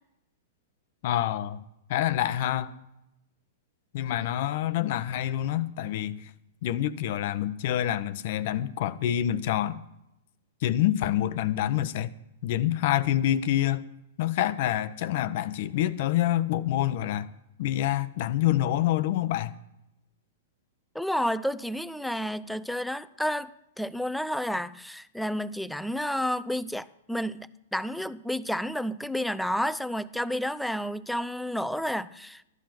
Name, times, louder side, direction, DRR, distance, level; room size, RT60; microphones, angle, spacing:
voice 1, 1.0-1.6 1.9-2.7 3.9-6.3 6.6-9.8 10.6-12.1 12.4-13.8 14.2-17.3 17.6-19.5, left 12 dB, 55° left, 15 dB, 0.7 m, -27 dB
voice 2, 20.9-23.5 23.8-32.4, equal, ahead, 15 dB, 0.5 m, -30 dB
13.5 x 10.5 x 5.9 m, 0.86 s
hypercardioid pair, 110°, 0 cm